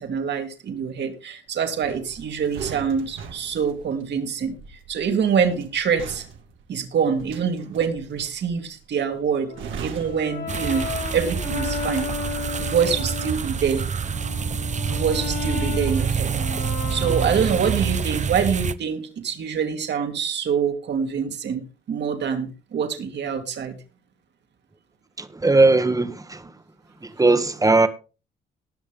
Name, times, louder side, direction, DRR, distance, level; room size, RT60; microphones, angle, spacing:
voice 1, 0.0-4.6 4.9-6.3 6.7-12.1 12.6-13.9 14.9-16.3 16.9-23.8, right 7 dB, 60° right, 2.5 m, -25 dB
sound 1, 1.8-11.2 11.5-11.7, right 7 dB, 80° right, 2.0 m, -40 dB
Brass instrument, 9.5-13.5 14.0-18.1, left 7 dB, 50° left, 2.0 m, -34 dB
sound 2, 10.5-18.7, right 7 dB, 35° right, 0.7 m, -27 dB
voice 2, 25.2-26.4 27.2-27.9, right 2 dB, 15° right, 1.3 m, -18 dB
19.0 x 6.7 x 3.7 m
cardioid pair, 90°, 20 cm